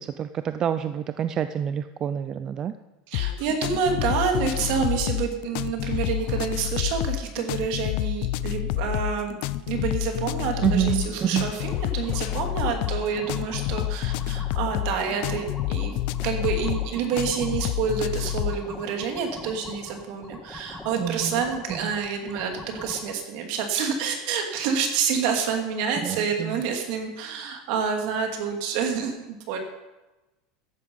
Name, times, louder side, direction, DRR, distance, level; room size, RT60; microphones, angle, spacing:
voice 1, 0.0-2.7 10.6-11.4 21.0-21.4 26.0-26.6, right 9 dB, 30° right, 11 dB, 0.4 m, -27 dB
sound 1, 3.1-18.6, left 14 dB, 60° left, 0.5 m, -28 dB
voice 2, 3.1-9.4 9.7-29.6, right 6 dB, 60° right, 4 dB, 2.5 m, -28 dB
sound 2, 11.6-23.1, left 2 dB, 5° left, 1.5 m, -43 dB
14.0 x 11.0 x 5.4 m, 1.1 s
supercardioid pair, 145°, 2 cm